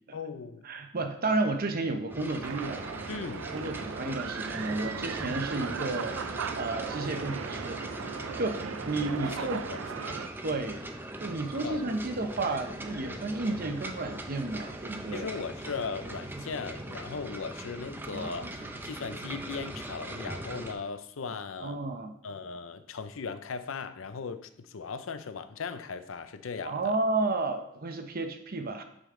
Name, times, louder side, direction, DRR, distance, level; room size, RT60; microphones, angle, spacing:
voice 1, 0.1-0.7 3.1-3.5 9.3-9.8 10.1-10.2 11.6-11.8 15.1-21.8 22.2-27.0, left 5 dB, 80° left, 0.6 m, -38 dB
voice 2, 0.6-2.9 3.5-7.8 8.4-9.6 10.4-10.8 11.2-15.3 18.1-18.5 21.6-22.1 26.6-28.8, right 2 dB, 50° right, 0.8 m, -32 dB
sound 1, 2.1-20.7, right 1 dB, 10° right, 0.6 m, -40 dB
sound 2, 2.4-10.3, right 6 dB, 85° right, 0.4 m, -37 dB
9.0 x 5.1 x 3.7 m
head